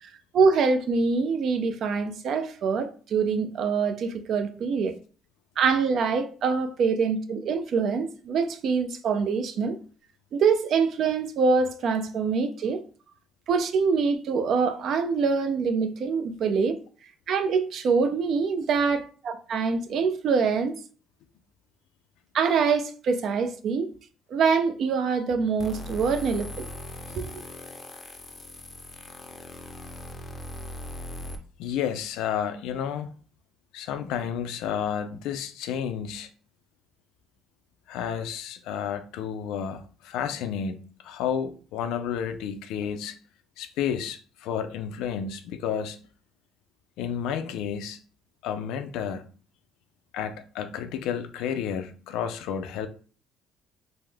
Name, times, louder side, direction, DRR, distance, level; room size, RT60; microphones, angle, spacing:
voice 1, 0.0-5.0 5.6-9.8 10.3-12.8 13.5-16.8 17.3-20.7 22.3-23.9 24.3-26.5 27.2-27.3, right 5 dB, 60° right, 0.4 m, -25 dB
sound 1, 25.6-31.4, left 1 dB, 30° left, 0.5 m, -40 dB
voice 2, 31.6-33.1 33.7-36.3 37.9-43.2 43.6-46.0 47.0-48.0 48.4-49.3 50.1-52.9, left 8 dB, 85° left, 0.4 m, -31 dB
3.5 x 2.0 x 3.3 m
cardioid pair, 110°, 0 cm